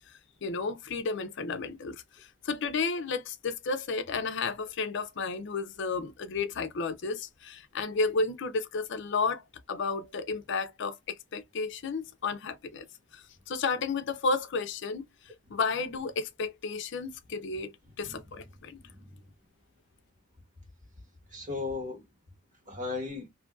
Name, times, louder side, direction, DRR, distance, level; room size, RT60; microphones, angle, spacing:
voice 1, 0.4-2.0 2.4-12.9 13.1-15.0 15.5-18.8, left 4 dB, 60° left, 0.5 m, -32 dB
voice 2, 18.0-18.4 18.8-19.2 21.3-22.0 22.7-23.3, left 3 dB, 40° right, 1.5 m, -37 dB
2.7 x 2.5 x 2.2 m
head